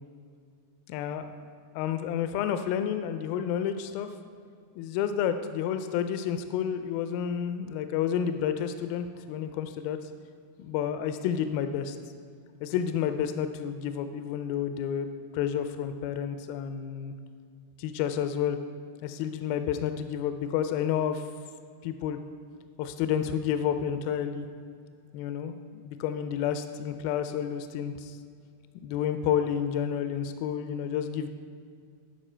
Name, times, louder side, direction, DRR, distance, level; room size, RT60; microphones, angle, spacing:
voice 1, 0.9-1.3 1.8-4.1 4.8-10.0 10.6-12.0 12.6-15.1 15.3-17.1 17.8-18.6 19.0-21.2 21.8-22.2 22.8-24.5 25.1-25.5 25.8-28.2 28.8-31.3, left 9 dB, 80° left, 9 dB, 2.3 m, -30 dB
12.0 x 5.0 x 4.3 m, 2.3 s
omnidirectional pair, 4.4 m